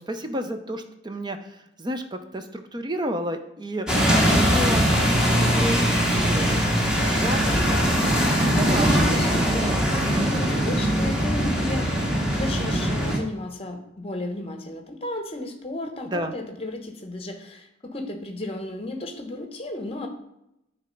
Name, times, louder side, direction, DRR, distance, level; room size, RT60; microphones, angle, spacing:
voice 1, 0.0-3.9 4.3-6.6 7.2-7.4 8.4-9.9 16.1-16.3, right 1 dB, 25° right, 7 dB, 0.6 m, -31 dB
sound 1, 3.9-13.2, equal, 5° right, 1.3 m, -21 dB
voice 2, 8.6-20.1, left 2 dB, 30° left, 5 dB, 1.0 m, -34 dB
8.8 x 3.4 x 5.2 m, 0.83 s
head